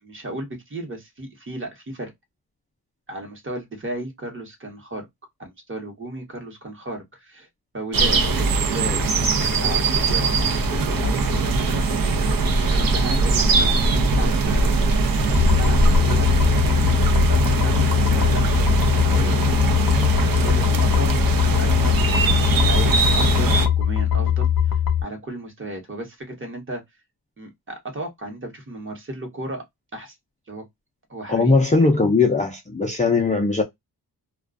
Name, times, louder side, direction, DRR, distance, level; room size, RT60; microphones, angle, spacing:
voice 1, 0.0-2.1 3.1-5.1 5.4-7.5 7.7-9.0 9.5-10.4 10.7-11.9 12.7-14.9 15.3-16.3 17.3-19.6 20.4-21.1 21.5-22.0 22.3-24.5 25.0-26.8 27.4-29.6 29.9-30.1 30.5-30.6 31.1-31.5, right 1 dB, 30° right, 1.0 m, -34 dB
sound 1, 7.9-23.7, right 3 dB, 60° right, 0.6 m, -21 dB
sound 2, 15.3-25.0, left 9 dB, 55° left, 0.8 m, -21 dB
voice 2, 31.3-33.6, left 3 dB, 20° left, 0.4 m, -19 dB
2.4 x 2.2 x 2.3 m
wide cardioid pair, 135°, 39 cm